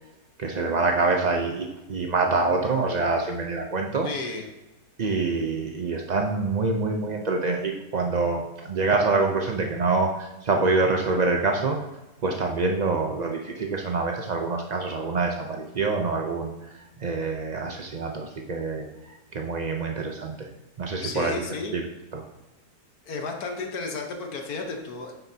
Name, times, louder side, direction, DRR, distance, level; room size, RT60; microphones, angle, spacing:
voice 1, 0.4-4.1 5.0-11.8 12.2-16.5 17.0-18.9 19.3-20.5 20.8-21.4 21.7-21.8 22.1-22.2, right 3 dB, 80° right, 2 dB, 0.3 m, -26 dB
voice 2, 4.0-4.5 21.0-21.8 23.1-25.1, left 3 dB, 65° left, 3 dB, 1.5 m, -33 dB
9.9 x 7.9 x 2.8 m, 1.0 s
omnidirectional pair, 1.8 m